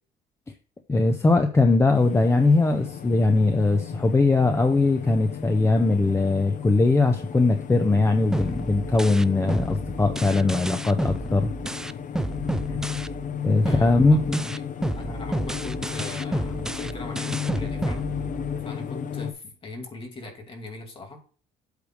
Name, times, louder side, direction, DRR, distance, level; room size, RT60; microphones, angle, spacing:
voice 1, 0.9-11.5 13.4-14.5, left 3 dB, 15° left, 5 dB, 0.7 m, -20 dB
sound 1, 1.9-19.3, left 8 dB, 50° left, 0.8 m, -34 dB
sound 2, 8.3-13.3 13.6-18.7, right 1 dB, 5° right, 0.3 m, -31 dB
voice 2, 13.6-14.2 15.0-18.1 18.6-21.2, left 2 dB, 30° left, 3 dB, 2.4 m, -39 dB
8.3 x 3.4 x 6.4 m, 0.40 s
cardioid pair, 110°, 17 cm